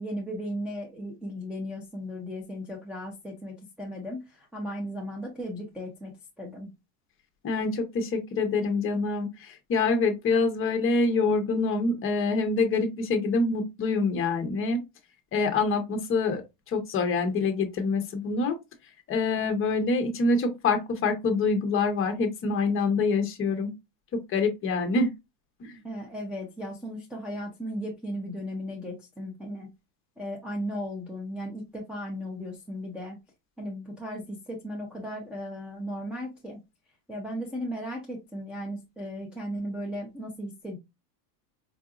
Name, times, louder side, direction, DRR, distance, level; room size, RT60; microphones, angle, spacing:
voice 1, 0.0-6.7 25.8-29.7 30.2-33.2 33.6-36.6 37.1-40.8, equal, ahead, 0.5 m, -36 dB
voice 2, 7.4-14.8 15.3-16.4 16.7-18.6 19.1-23.7 24.1-25.1 25.6-25.8, left 3 dB, 25° left, 0.9 m, -26 dB
4.8 x 2.6 x 2.4 m
supercardioid pair, 145°, 49 cm